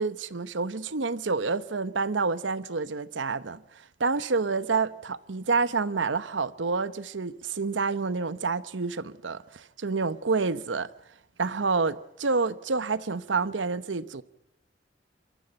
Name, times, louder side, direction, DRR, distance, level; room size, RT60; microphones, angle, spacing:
voice 1, 0.0-3.6 4.0-10.9 11.4-14.2, right 4 dB, 90° right, 0.9 m, -28 dB
27.0 x 14.0 x 8.9 m
head